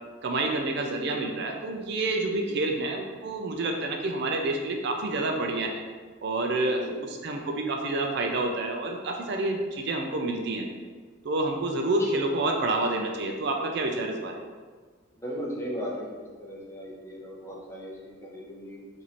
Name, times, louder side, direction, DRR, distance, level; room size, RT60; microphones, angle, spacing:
voice 1, 0.2-5.8 6.2-6.8 7.2-10.7 11.2-14.4, right 2 dB, 60° right, 2 dB, 0.4 m, -28 dB
voice 2, 2.3-2.7 6.7-6.9 12.0-12.1 15.1-18.8, equal, 15° left, -3 dB, 0.6 m, -37 dB
3.0 x 2.6 x 4.1 m, 1.5 s
head